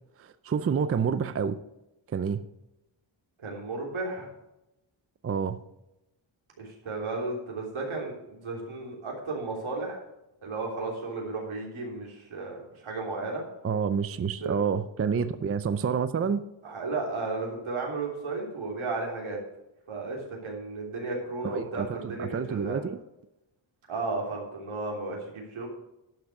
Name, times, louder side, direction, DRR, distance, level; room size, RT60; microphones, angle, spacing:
voice 1, 0.2-1.6 2.1-2.4 5.2-5.6 13.6-16.4 21.4-23.0, right 6 dB, 30° right, 0.4 m, -28 dB
voice 2, 3.4-4.3 6.6-10.0 10.4-13.4 14.4-14.6 16.6-19.4 19.9-22.8 23.9-25.7, right 3 dB, 85° right, 3.4 m, -34 dB
11.5 x 6.2 x 6.0 m
wide cardioid pair, 135°, 48 cm